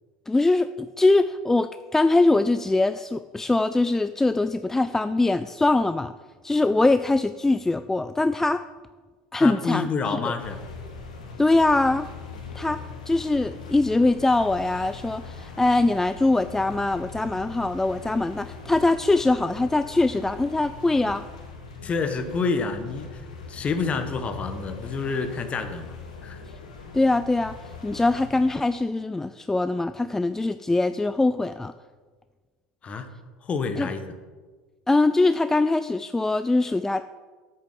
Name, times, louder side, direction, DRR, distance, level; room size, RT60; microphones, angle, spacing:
voice 1, 0.3-6.1 6.4-8.6 9.3-9.9 10.2-10.3 11.4-12.1 12.5-12.8 13.1-21.2 26.9-27.6 27.8-31.7 33.8-33.9 34.9-37.0, left 2 dB, 10° left, 11 dB, 0.4 m, -22 dB
voice 2, 9.4-10.6 21.8-26.0 26.2-26.4 32.8-33.1 33.4-34.1, left 4 dB, 35° left, 8 dB, 1.4 m, -28 dB
sound 1, 10.4-28.5, left 4 dB, 85° left, 1.7 m, -41 dB
8.4 x 6.8 x 7.5 m, 1.4 s
hypercardioid pair, 80°, 4 cm